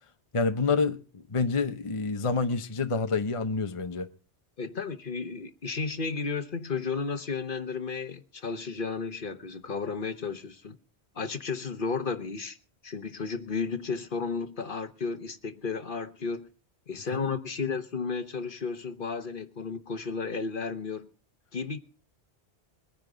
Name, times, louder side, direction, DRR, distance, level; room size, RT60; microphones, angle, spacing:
voice 1, 0.3-4.1 17.1-17.4, left 4 dB, 35° left, 0.9 m, -28 dB
voice 2, 4.6-10.8 11.1-12.6 12.8-16.5 16.9-21.1 21.5-21.8, left 4 dB, 55° left, 1.2 m, -33 dB
22.0 x 10.5 x 3.9 m
omnidirectional pair, 1.1 m